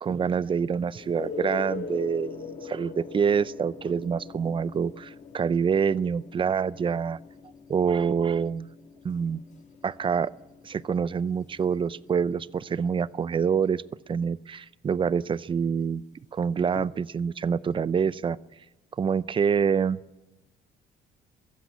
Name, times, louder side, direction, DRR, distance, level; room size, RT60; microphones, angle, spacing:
voice 1, 0.0-7.2 7.7-8.7 9.0-9.4 9.8-10.3 10.6-13.8 14.1-16.0 16.3-18.4 19.0-20.0, right 6 dB, 30° right, 19 dB, 0.6 m, -26 dB
sound 1, 0.9-12.5 16.8-16.9, left 5 dB, 45° left, 1.5 m, -41 dB
22.5 x 15.5 x 8.5 m, 1.0 s
cardioid pair, 110°, 17 cm